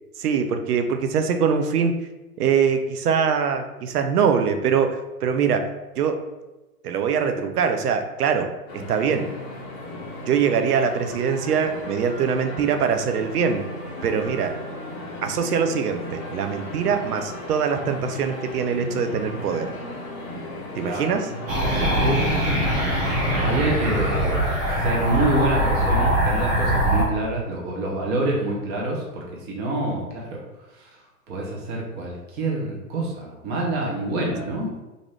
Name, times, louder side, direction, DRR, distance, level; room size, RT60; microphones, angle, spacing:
voice 1, 0.2-2.0 2.4-5.7 6.0-6.2 6.8-9.3 10.3-13.7 14.0-14.6 15.2-19.7 20.8-21.3, right 6 dB, 80° right, 7 dB, 0.6 m, -23 dB
sound 1, 8.7-23.7, left 1 dB, 35° left, 0.7 m, -35 dB
voice 2, 20.8-21.1 22.0-22.5 23.4-24.4 24.8-30.4 30.8-30.9 31.3-34.7, right 2 dB, 20° right, -2 dB, 0.7 m, -26 dB
sound 2, 21.5-27.0, right 1 dB, 60° right, 1.1 m, -22 dB
2.6 x 2.6 x 3.2 m, 1.1 s
hypercardioid pair, 120°, 45 cm